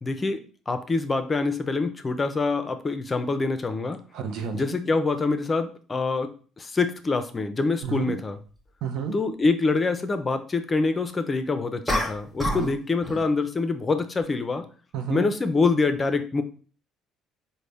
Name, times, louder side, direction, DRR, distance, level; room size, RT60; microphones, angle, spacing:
voice 1, 0.0-4.0 4.5-6.3 6.6-8.4 9.1-14.7 15.1-16.4, left 3 dB, 25° left, 9 dB, 0.4 m, -25 dB
voice 2, 4.1-4.8 7.8-8.1 8.8-9.1 12.5-12.7 14.9-15.2, right 6 dB, 70° right, 6 dB, 0.6 m, -31 dB
sound 1, 7.8-7.9 11.9-12.8 13.0-13.3, left 1 dB, 5° left, 1.0 m, -28 dB
3.9 x 2.1 x 3.3 m, 0.40 s
supercardioid pair, 85°, 0 cm